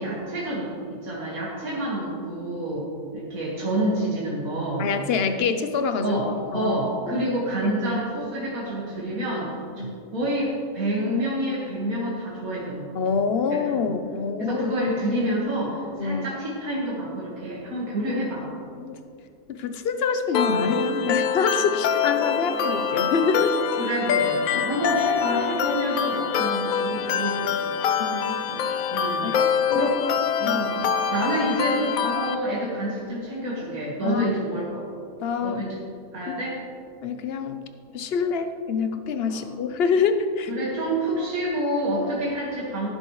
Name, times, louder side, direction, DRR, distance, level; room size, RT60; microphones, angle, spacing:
voice 1, 0.0-4.9 6.0-13.0 13.5-13.9 14.4-18.5 23.8-27.7 28.5-28.6 28.9-30.0 30.4-30.8 31.1-34.9 35.4-35.8 36.1-36.6 39.3-39.4 40.5-42.9, right 1 dB, 75° right, -6 dB, 2.2 m, -28 dB
voice 2, 4.8-6.2 6.5-6.8 7.1-7.3 7.6-7.7 9.8-10.0 12.9-14.7 16.0-16.3 18.9-19.0 19.5-23.6 24.5-24.6 28.0-28.4 29.2-29.9 30.5-30.6 34.0-34.3 35.2-35.7 36.3-36.4 37.0-37.6 37.9-40.5 42.0-42.1, left 5 dB, 50° left, 8 dB, 0.9 m, -26 dB
sound 1, 20.3-32.3, left 7 dB, 75° left, 1.1 m, -25 dB
17.5 x 10.0 x 3.2 m, 2.5 s
omnidirectional pair, 1.5 m